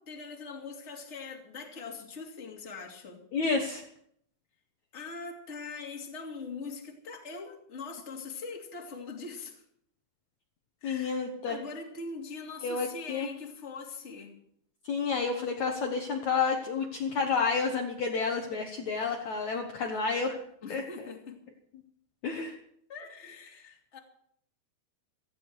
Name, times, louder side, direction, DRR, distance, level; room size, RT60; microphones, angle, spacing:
voice 1, 0.0-3.2 4.9-9.6 10.8-14.3 20.6-21.4 22.9-24.0, left 4 dB, 20° left, 0 dB, 2.3 m, -42 dB
voice 2, 3.3-3.8 10.8-11.6 12.6-13.3 14.8-20.4 20.7-20.8 22.2-22.5, left 5 dB, 60° left, 2 dB, 2.2 m, -30 dB
18.0 x 15.0 x 4.7 m, 0.68 s
omnidirectional pair, 4.6 m